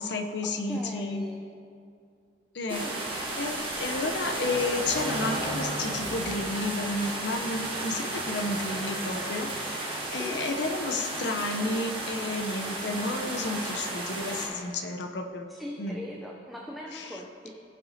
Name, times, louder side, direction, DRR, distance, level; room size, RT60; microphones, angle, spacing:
voice 1, 0.0-1.2 2.5-2.9 3.4-15.5 15.8-16.0 16.9-17.2, left 2 dB, 75° left, 5 dB, 0.7 m, -32 dB
voice 2, 0.6-1.4 2.7-3.0 8.9-9.0 10.0-10.5 15.5-17.5, left 1 dB, ahead, -2 dB, 0.5 m, -40 dB
sound 1, 2.7-14.5, right 2 dB, 30° right, 1.3 m, -33 dB
15.0 x 5.7 x 2.8 m, 2.4 s
head